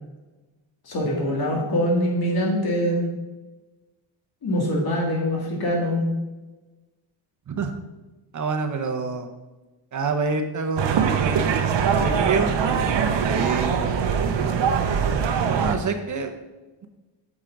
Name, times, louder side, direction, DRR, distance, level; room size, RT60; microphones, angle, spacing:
voice 1, 0.8-3.1 4.4-6.0, equal, 50° left, -2 dB, 2.6 m, -23 dB
voice 2, 8.3-9.3 9.9-12.5 12.9-13.8 15.6-16.3, right 4 dB, 40° right, 5 dB, 0.9 m, -27 dB
sound 1, 10.8-15.8, right 6 dB, 65° right, 0.9 m, -22 dB
8.2 x 6.3 x 4.0 m, 1.1 s
wide cardioid pair, 145°, 47 cm